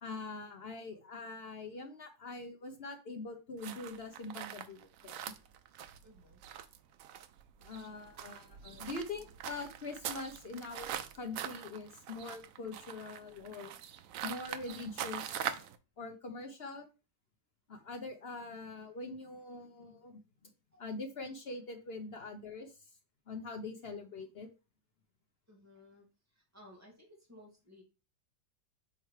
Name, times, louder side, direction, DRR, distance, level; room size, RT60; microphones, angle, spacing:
voice 1, 0.0-5.2 7.6-13.8 14.2-15.7 16.0-16.9 17.7-20.5 20.8-22.9 23.3-24.5, left 3 dB, 60° left, 5 dB, 0.6 m, -44 dB
sound 1, 3.6-15.8, right 10 dB, 70° right, 0.8 m, -43 dB
voice 2, 6.0-6.4 20.7-20.8 25.5-26.1 26.3-27.8, left 1 dB, 10° right, -1 dB, 2.2 m, -58 dB
7.1 x 4.6 x 3.2 m, 0.31 s
omnidirectional pair, 2.0 m